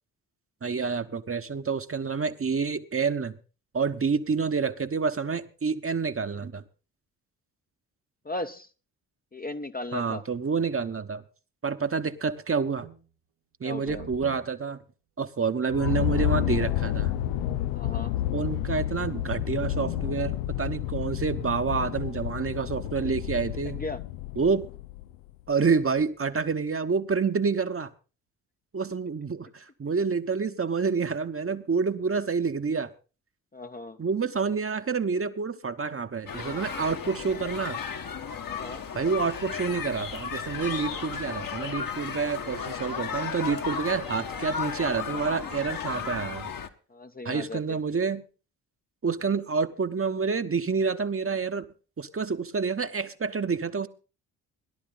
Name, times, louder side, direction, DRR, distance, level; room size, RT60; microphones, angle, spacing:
voice 1, 0.6-3.3 3.7-6.6 9.9-11.2 11.6-12.9 13.6-14.8 15.2-17.1 18.3-23.8 24.4-24.6 25.5-27.9 28.7-32.9 34.0-37.8 38.9-46.5 47.2-48.2 49.0-51.6 52.0-53.9, right 5 dB, 30° right, 9 dB, 1.1 m, -28 dB
voice 2, 8.2-8.7 9.3-10.2 13.6-14.1 17.7-18.1 23.6-24.0 33.5-34.0 38.4-38.9 44.1-44.6 46.9-47.8, left 2 dB, 20° left, 8 dB, 0.9 m, -37 dB
Success menu, 12.8-13.0 13.9-14.4 15.7-17.6 18.6-20.2, right 8 dB, 80° right, 1.8 m, -44 dB
sound 1, 15.7-25.3, left 14 dB, 75° left, 0.7 m, -30 dB
sound 2, 36.3-46.7, left 6 dB, 45° left, 1.5 m, -34 dB
17.5 x 11.0 x 3.9 m, 0.34 s
hypercardioid pair, 45°, 46 cm